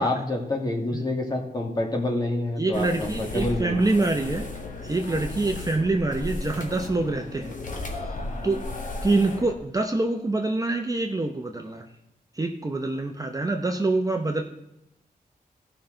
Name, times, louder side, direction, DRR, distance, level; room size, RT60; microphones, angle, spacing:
voice 1, 0.0-4.3, left 2 dB, 25° left, 1 dB, 2.0 m, -28 dB
voice 2, 2.6-4.5 4.8-7.5 8.4-8.6 9.0-11.8 12.4-14.4, right 2 dB, 25° right, 3 dB, 0.8 m, -25 dB
sound 1, 2.7-9.5, left 2 dB, 60° left, 1.7 m, -35 dB
16.0 x 5.8 x 3.8 m, 0.86 s
wide cardioid pair, 110°, 15 cm